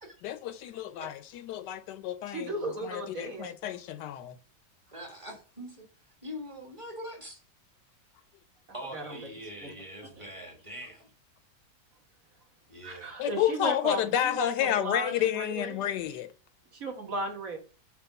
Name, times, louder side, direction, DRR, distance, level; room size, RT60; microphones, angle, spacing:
voice 1, 0.2-2.5 2.8-4.3 13.2-16.3, left 10 dB, 80° left, 1.2 m, -30 dB
voice 2, 2.3-3.5 8.9-9.3 9.6-9.7 10.2-10.3 12.8-15.8 16.7-17.6, right 2 dB, 55° right, 1.7 m, -36 dB
voice 3, 4.9-5.8 6.2-7.4 8.7-11.1 12.7-13.1, equal, 20° right, 1.4 m, -43 dB
5.9 x 3.4 x 5.8 m
omnidirectional pair, 1.9 m